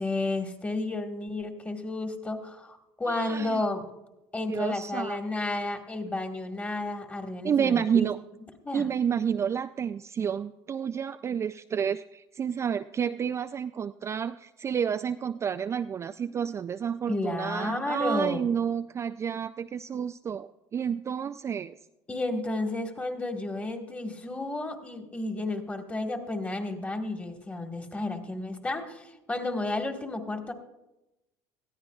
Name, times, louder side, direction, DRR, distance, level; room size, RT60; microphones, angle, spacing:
voice 1, 0.0-3.8 4.3-8.1 8.6-8.9 17.1-18.5 22.1-30.5, left 2 dB, 15° left, 4 dB, 1.6 m, -32 dB
voice 2, 3.1-3.6 4.5-5.2 7.4-8.2 8.7-21.8, right 7 dB, 30° right, 9 dB, 0.3 m, -30 dB
19.5 x 14.0 x 2.4 m, 0.95 s
supercardioid pair, 100°, 10 cm